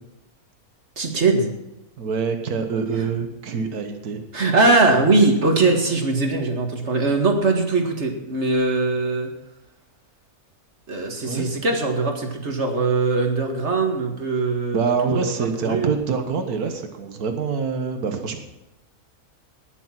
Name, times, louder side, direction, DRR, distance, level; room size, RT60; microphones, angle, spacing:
voice 1, 1.0-1.5 4.3-9.3 10.9-15.3 15.6-16.0, right 3 dB, 50° right, 3 dB, 2.1 m, -21 dB
voice 2, 2.0-4.2 11.2-11.5 14.7-18.4, right 5 dB, 85° right, 6 dB, 1.8 m, -25 dB
19.5 x 7.2 x 5.9 m, 0.95 s
omnidirectional pair, 1.6 m